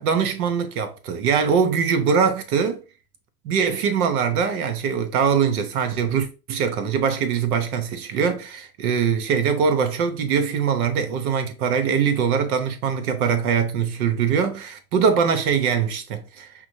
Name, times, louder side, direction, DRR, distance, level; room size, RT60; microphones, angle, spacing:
voice 1, 0.0-2.8 3.4-16.5, right 6 dB, 70° right, 1.0 m, -22 dB
5.8 x 2.2 x 2.7 m
hypercardioid pair, 80°, 44 cm